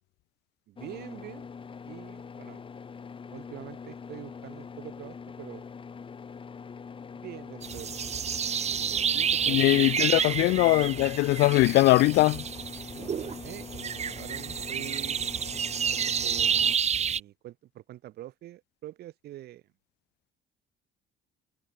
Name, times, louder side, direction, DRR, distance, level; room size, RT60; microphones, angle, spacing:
voice 1, 0.7-1.5 1.9-2.6 3.3-5.6 7.1-8.1 8.6-10.0 10.4-10.6 13.4-15.2 15.9-16.6 16.9-19.6, right 14 dB, 70° right, 3.6 m, -45 dB
sound 1, 0.8-16.8, left 6 dB, 30° left, 2.4 m, -43 dB
sound 2, 7.6-17.2, right 7 dB, 40° right, 2.0 m, -29 dB
voice 2, 9.5-12.4, left 20 dB, 80° left, 0.6 m, -21 dB
cardioid pair, 110°, 17 cm